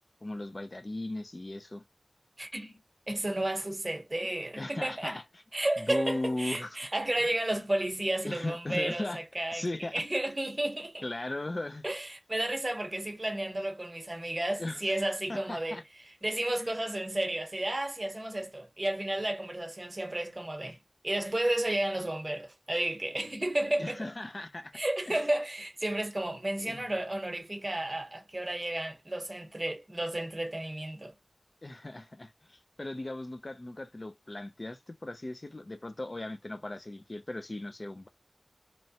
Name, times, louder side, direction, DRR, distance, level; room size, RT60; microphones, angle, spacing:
voice 1, 0.2-1.8 4.6-5.2 5.8-6.8 8.2-9.2 9.5-10.0 11.0-11.8 14.6-15.0 15.3-15.8 16.6-16.7 23.8-24.8 25.1-25.2 26.6-26.8 31.6-38.1, left 2 dB, 45° left, 0.4 m, -37 dB
voice 2, 2.4-2.8 3.1-5.2 5.5-9.6 9.9-11.0 11.8-15.8 16.2-20.8 21.0-24.1 24.7-31.1, right 1 dB, 40° right, 0.8 m, -32 dB
2.9 x 2.2 x 2.7 m
wide cardioid pair, 60°, 0 cm